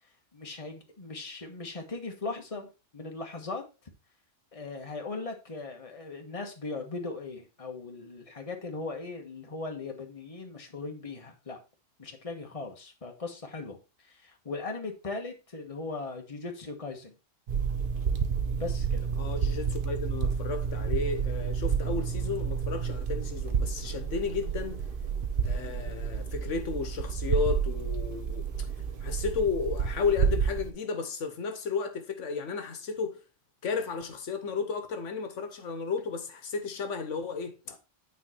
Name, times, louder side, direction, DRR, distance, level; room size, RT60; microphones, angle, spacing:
voice 1, 0.3-3.6 4.5-11.6 12.0-17.1 18.5-19.1 37.7-37.8, left 3 dB, 30° left, 1.4 m, -39 dB
sound 1, 17.5-30.7, right 6 dB, 50° right, 0.9 m, -30 dB
voice 2, 19.2-24.9 25.4-28.7 29.0-33.2 33.6-37.7, left 5 dB, 80° left, 1.3 m, -33 dB
9.2 x 4.1 x 4.4 m
omnidirectional pair, 1.2 m